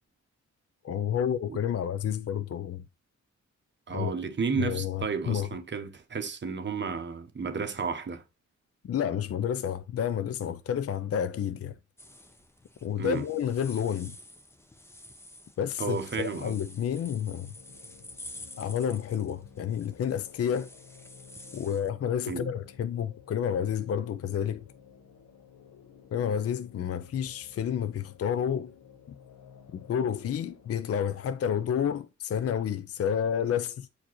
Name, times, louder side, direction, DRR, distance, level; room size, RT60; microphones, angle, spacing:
voice 1, 0.8-2.8 3.9-4.1 4.6-5.5 8.8-11.8 12.8-14.2 15.6-17.5 18.6-20.7 21.5-24.6 26.1-28.7 29.7-33.9, left 8 dB, 55° left, 0.4 m, -30 dB
voice 2, 3.9-8.2 13.0-13.2 15.8-16.6 22.2-22.5, right 5 dB, 40° right, 0.9 m, -32 dB
sound 1, 12.0-21.9, left 1 dB, 10° left, 0.6 m, -50 dB
sound 2, 17.5-32.0, left 7 dB, 80° left, 1.2 m, -54 dB
8.5 x 4.5 x 3.0 m
wide cardioid pair, 160°, 30 cm